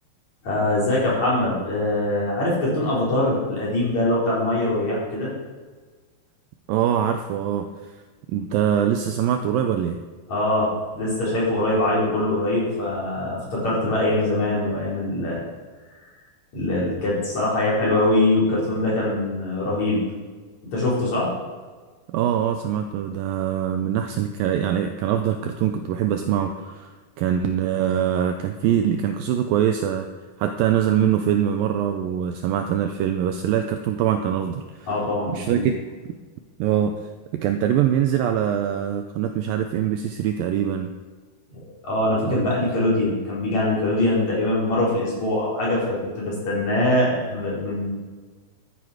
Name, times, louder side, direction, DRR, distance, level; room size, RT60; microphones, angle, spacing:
voice 1, 0.4-5.3 10.3-15.4 16.5-20.0 20.7-21.3 34.9-35.6 41.5-47.9, left 1 dB, 45° left, -6 dB, 5.1 m, -23 dB
voice 2, 6.7-7.7 8.3-10.0 22.1-30.1 30.4-34.9 35.3-35.7 36.6-36.9 37.3-40.9 42.2-42.6, right 9 dB, 85° right, 6 dB, 2.0 m, -23 dB
13.5 x 8.6 x 5.0 m, 1.4 s
omnidirectional pair, 4.7 m